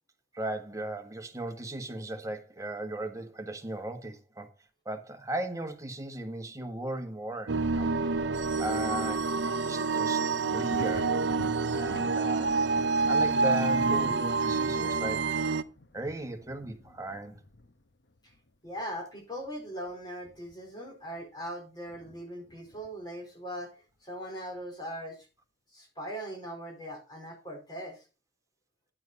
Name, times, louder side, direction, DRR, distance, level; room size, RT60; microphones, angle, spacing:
voice 1, 0.3-4.5 4.8-7.9 8.6-11.1 11.7-12.5 13.1-15.3 15.9-17.4, right 1 dB, 20° right, 1.4 m, -37 dB
sound 1, 7.5-15.6, right 4 dB, 75° right, 0.7 m, -27 dB
Thunder, 7.6-18.9 19.4-20.9 21.2-21.3 21.9-23.2 24.6-24.7, left 2 dB, 70° left, 0.9 m, -49 dB
voice 2, 18.6-23.7 24.0-25.3 25.7-28.0, equal, 25° left, 4.4 m, -40 dB
11.0 x 7.6 x 4.1 m
head